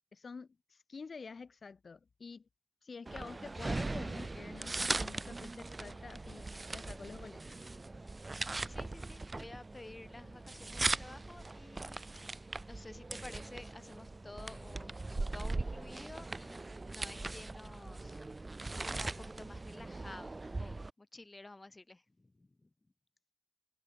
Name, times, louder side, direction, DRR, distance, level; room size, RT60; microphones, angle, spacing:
voice 1, 0.1-2.5 2.8-7.6, left 4 dB, 70° left, 1.2 m, -49 dB
sound 1, 3.1-20.9, right 2 dB, 35° right, 0.4 m, -40 dB
voice 2, 8.7-18.2 18.9-22.7, left 2 dB, 30° left, 1.3 m, -52 dB
wide cardioid pair, 105°, 0 cm